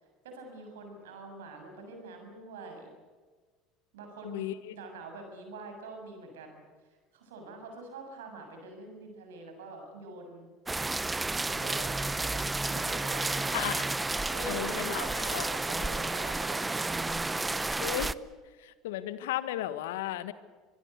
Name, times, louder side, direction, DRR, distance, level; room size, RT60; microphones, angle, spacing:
voice 1, 0.2-2.9 3.9-6.6 7.1-10.5 11.4-13.8 14.3-17.5, right 2 dB, 80° right, 4 dB, 7.2 m, -44 dB
voice 2, 4.2-4.7 13.5-13.8 14.5-15.1 15.3-15.5 17.8-18.1 18.6-20.3, left 13 dB, 75° left, 13 dB, 1.5 m, -34 dB
sound 1, 10.7-18.1, right 2 dB, 15° right, 0.8 m, -31 dB
25.5 x 22.0 x 8.3 m, 1.4 s
hypercardioid pair, 70°, 0 cm